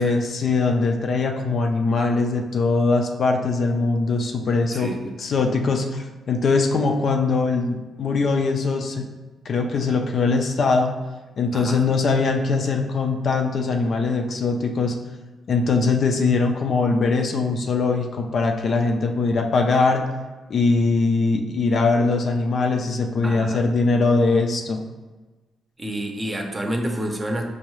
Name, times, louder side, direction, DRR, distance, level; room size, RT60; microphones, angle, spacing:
voice 1, 0.0-4.9 5.2-9.1 9.5-10.9 11.4-14.9 15.5-20.0 20.5-24.8, left 3 dB, 60° left, 3 dB, 0.4 m, -21 dB
voice 2, 4.7-5.1 11.5-11.9 23.2-23.7 25.8-27.4, right 1 dB, 25° right, 2 dB, 0.6 m, -29 dB
4.8 x 2.3 x 3.1 m, 1.2 s
cardioid pair, 70°, 0 cm